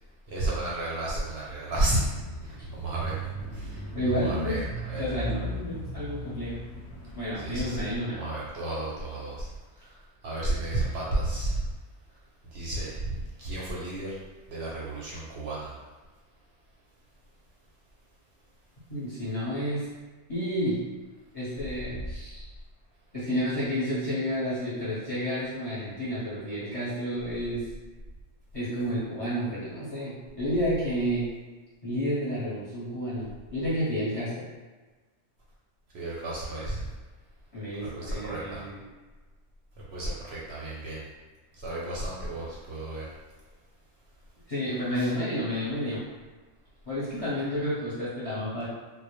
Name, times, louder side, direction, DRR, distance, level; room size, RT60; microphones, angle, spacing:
voice 1, 0.3-2.0 2.4-3.8 4.2-5.0 7.4-9.5 9.8-9.9 10.2-11.7 12.5-14.2 14.5-15.7 35.9-36.9 37.8-38.6 39.9-41.0 41.6-43.1 45.0-45.1, right 1 dB, 65° right, -6 dB, 0.7 m, -32 dB
Bicycle / Mechanisms, 1.7-7.8, right 1 dB, 70° left, 0.8 m, -37 dB
voice 2, 3.9-4.6 4.9-6.6 7.1-8.2 18.9-19.8 20.3-20.8 21.3-22.5 23.1-27.6 28.5-31.3 31.8-34.4 37.5-38.8 44.5-46.0 46.9-48.7, equal, 30° left, -11 dB, 0.8 m, -30 dB
2.1 x 2.0 x 2.9 m, 1.3 s
omnidirectional pair, 1.3 m